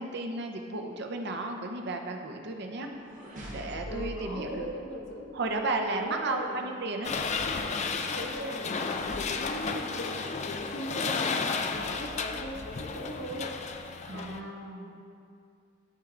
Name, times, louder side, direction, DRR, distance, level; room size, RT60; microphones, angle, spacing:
voice 1, 0.0-2.9 3.5-4.7 5.3-7.1 14.1-15.0, right 2 dB, 55° right, 3 dB, 0.7 m, -34 dB
sound 1, 2.5-5.6, equal, 40° right, 1.7 m, -44 dB
voice 2, 3.8-5.4 5.7-6.8 8.0-13.6 14.1-15.0, equal, 65° left, -1 dB, 1.1 m, -39 dB
sound 2, 7.0-14.4, left 4 dB, 35° left, 0.4 m, -33 dB
12.0 x 4.5 x 3.8 m, 2.4 s
head